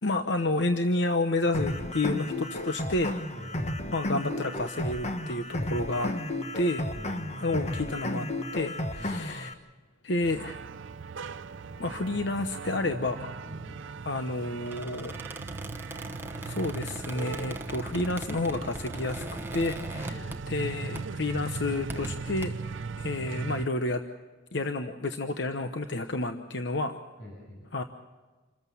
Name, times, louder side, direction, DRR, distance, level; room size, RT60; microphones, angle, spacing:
voice 1, 0.0-3.1 3.9-6.1 6.5-6.8 7.4-8.3 8.5-9.5 10.0-10.6 11.8-13.3 14.0-15.2 16.4-22.5 23.0-24.0 24.5-27.0 27.7-27.8, left 2 dB, 60° left, 7 dB, 1.0 m, -30 dB
sound 1, 1.5-9.5, left 1 dB, 35° left, 1.3 m, -33 dB
voice 2, 3.3-3.7 6.9-7.6 9.0-9.2 13.5-13.8 20.0-20.3 27.2-27.7, left 1 dB, 85° left, -2 dB, 6.3 m, -44 dB
sound 2, 10.2-23.7, right 4 dB, 75° right, 0.6 m, -39 dB
Squeak, 14.6-20.7 20.9-21.2 21.7-22.4, right 1 dB, 10° right, 1.0 m, -40 dB
27.5 x 14.5 x 7.1 m, 1.3 s
head